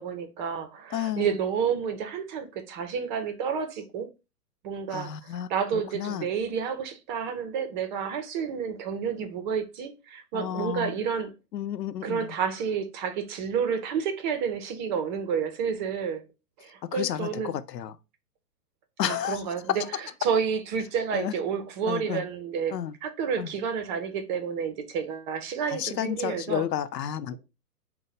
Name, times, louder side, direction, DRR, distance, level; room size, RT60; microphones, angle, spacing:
voice 1, 0.0-4.1 4.6-11.3 12.0-16.2 16.6-17.6 19.1-22.7 23.0-26.6, right 7 dB, 30° right, 0.6 m, -30 dB
voice 2, 0.9-1.5 4.9-6.3 10.3-11.0 11.5-12.4 16.9-18.0 19.0-19.4 19.8-19.9 21.1-21.3 21.9-22.2 22.7-22.9 23.4-23.5 25.7-27.3, left 10 dB, 85° left, 0.6 m, -32 dB
3.7 x 2.2 x 4.1 m
hypercardioid pair, 125°, 48 cm